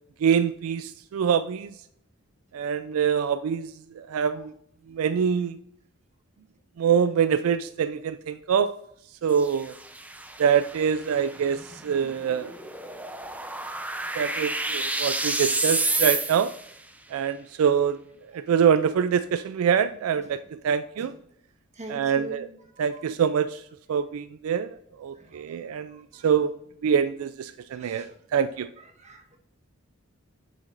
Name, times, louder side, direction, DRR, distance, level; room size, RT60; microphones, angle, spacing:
voice 1, 0.2-1.7 2.5-3.7 4.0-4.5 4.9-5.6 6.8-8.7 9.2-9.7 10.4-12.5 14.2-16.5 17.1-18.0 18.3-21.1 21.9-22.5 22.8-23.6 23.9-26.5 26.8-28.7, right 7 dB, 75° right, 12 dB, 0.3 m, -25 dB
sound 1, 9.3-16.7, right 2 dB, 5° right, 0.5 m, -30 dB
voice 2, 21.7-22.4 22.7-23.0 25.1-26.3 27.7-28.1 28.8-29.4, right 2 dB, 35° right, 3 dB, 1.2 m, -44 dB
7.9 x 7.0 x 2.5 m, 0.72 s
head